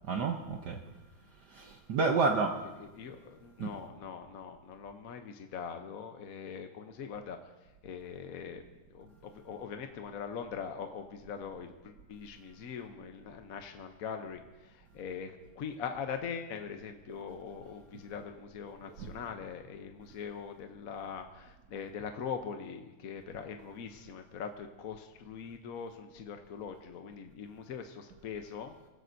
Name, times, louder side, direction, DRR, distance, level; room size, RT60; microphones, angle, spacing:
voice 1, 0.1-0.8 1.5-2.6 3.6-3.7 19.0-19.1, right 4 dB, 60° right, 3 dB, 1.3 m, -30 dB
voice 2, 2.8-7.4 7.8-8.6 8.9-14.4 14.9-28.7, left 6 dB, 55° left, 5 dB, 1.0 m, -42 dB
26.0 x 15.5 x 2.7 m, 1.1 s
omnidirectional pair, 2.3 m